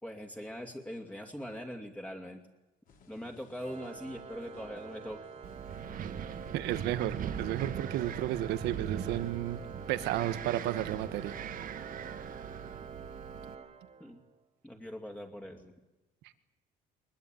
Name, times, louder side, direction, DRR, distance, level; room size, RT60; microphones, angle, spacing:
voice 1, 0.0-2.4 3.1-5.2 14.0-14.2 14.6-15.7, equal, 10° left, 2 dB, 2.7 m, -42 dB
sound 1, 2.9-12.5, left 4 dB, 55° left, 5.7 m, -60 dB
Organ, 3.6-14.4, right 5 dB, 40° right, 2.0 m, -47 dB
Wind, 5.4-13.5, right 9 dB, 55° right, 1.4 m, -40 dB
voice 2, 6.5-9.6 9.9-11.4, right 13 dB, 85° right, 12 dB, 1.4 m, -32 dB
22.5 x 21.0 x 9.2 m, 1.0 s
cardioid pair, 110°, 17 cm